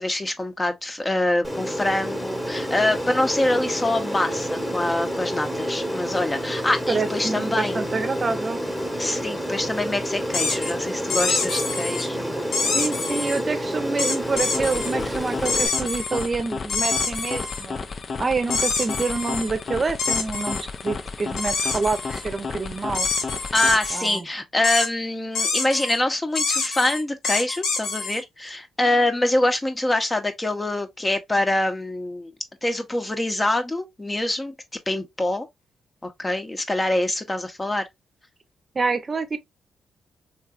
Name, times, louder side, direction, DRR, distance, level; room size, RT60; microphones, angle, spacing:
voice 1, 0.0-7.8 9.0-12.3 23.5-32.3 32.6-34.5 34.9-35.5 36.0-37.8, left 1 dB, 20° left, 0.8 m, -25 dB
Aircraft, 1.4-15.7, equal, ahead, 1.1 m, -29 dB
voice 2, 6.9-8.6 12.7-17.8 18.2-23.1 23.9-24.2 38.7-39.4, right 4 dB, 40° right, 0.7 m, -27 dB
sound 1, 10.3-10.7 11.1-12.1 12.5-13.4 14.0-14.9 15.5-16.3 16.7-17.7 18.5-19.5 20.0-20.6 21.4-22.3 22.9-24.2 24.6-24.9 25.4-26.0 26.4-28.2, left 4 dB, 85° left, 1.0 m, -26 dB
sound 2, 14.2-24.1, left 4 dB, 50° left, 0.5 m, -33 dB
3.2 x 2.8 x 2.4 m
cardioid pair, 65°, 0 cm